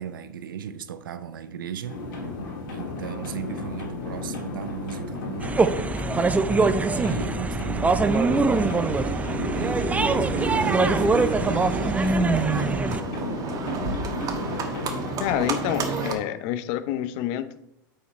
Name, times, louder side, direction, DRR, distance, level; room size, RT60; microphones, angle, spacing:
voice 1, 0.0-2.0 2.7-6.0 6.6-8.8 9.5-12.8, right 9 dB, 80° right, 12 dB, 0.7 m, -37 dB
sound 1, 1.9-15.4, left 3 dB, 70° left, 2.3 m, -34 dB
sound 2, 5.4-13.0, right 3 dB, 15° right, 0.5 m, -23 dB
Livestock farm animals working animals, 8.1-16.1, right 3 dB, 35° right, 1.4 m, -31 dB
voice 2, 15.2-17.6, left 11 dB, 55° left, 13 dB, 0.7 m, -28 dB
8.1 x 5.0 x 4.4 m, 0.81 s
hypercardioid pair, 95°, 11 cm